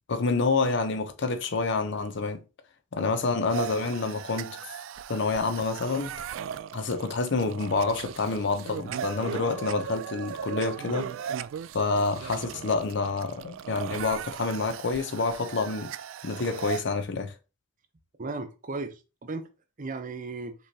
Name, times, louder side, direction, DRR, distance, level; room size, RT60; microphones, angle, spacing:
voice 1, 0.1-2.4 2.9-4.6 5.1-6.1 6.7-11.1 11.7-15.9 16.2-17.3, left 3 dB, 60° left, 0.6 m, -28 dB
sound 1, 3.5-16.8, right 8 dB, 75° right, 0.3 m, -37 dB
voice 2, 18.2-19.5 19.8-20.5, right 3 dB, 40° right, 0.7 m, -35 dB
5.4 x 3.0 x 2.7 m
head